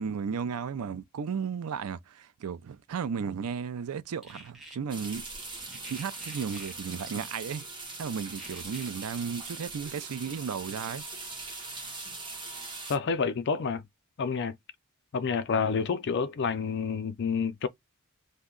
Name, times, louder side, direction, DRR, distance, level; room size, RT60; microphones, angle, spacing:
voice 1, 0.0-5.3 5.9-7.6 8.0-11.0, right 6 dB, 90° right, 0.4 m, -34 dB
sound 1, 4.2-4.8 5.7-6.8 8.4-8.9, right 1 dB, ahead, 0.9 m, -48 dB
sound 2, 4.9-13.0, right 3 dB, 20° right, 1.1 m, -41 dB
voice 2, 12.9-13.8 14.2-14.5 15.1-17.7, left 5 dB, 50° left, 0.4 m, -28 dB
2.7 x 2.1 x 3.7 m
head